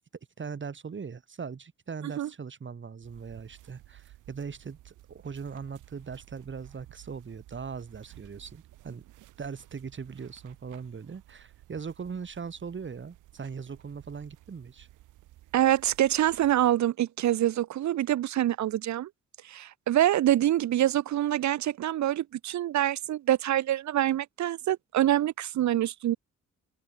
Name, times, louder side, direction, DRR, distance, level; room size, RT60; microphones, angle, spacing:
voice 1, 0.4-9.0 9.4-14.9, right 6 dB, 40° right, 5.3 m, -40 dB
sound 1, 3.0-16.7, right 15 dB, 90° right, 6.3 m, -54 dB
voice 2, 15.5-19.1 19.4-26.2, right 13 dB, 70° right, 1.2 m, -25 dB
open air
cardioid pair, 90°, 30 cm